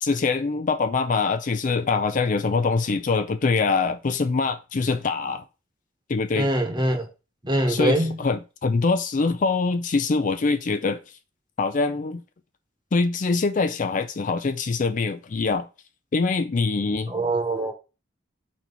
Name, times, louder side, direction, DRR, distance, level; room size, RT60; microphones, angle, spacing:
voice 1, 0.0-5.4 6.1-6.5 7.7-11.0 11.6-12.2 12.9-15.7 16.1-17.1, left 4 dB, 40° left, 0.4 m, -24 dB
voice 2, 6.3-7.0 7.4-8.1 17.1-17.7, right 1 dB, 25° right, 1.2 m, -23 dB
4.5 x 4.3 x 5.3 m
head